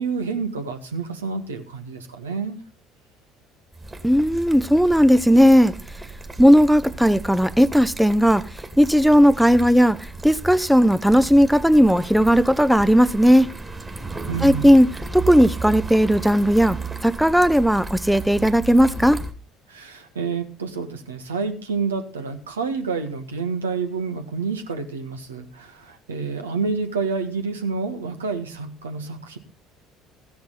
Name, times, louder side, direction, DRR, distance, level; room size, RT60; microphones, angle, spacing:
voice 1, 0.0-2.6 14.3-14.7 19.7-29.4, right 5 dB, 80° right, 1.5 m, -28 dB
sound 1, 3.7-19.3, right 3 dB, 20° right, 2.3 m, -34 dB
voice 2, 4.0-5.7 6.4-8.5 8.8-13.5 14.4-14.9 15.1-19.2, equal, ahead, 0.6 m, -16 dB
15.0 x 10.5 x 4.1 m
figure-of-eight pair, 60°, 0 cm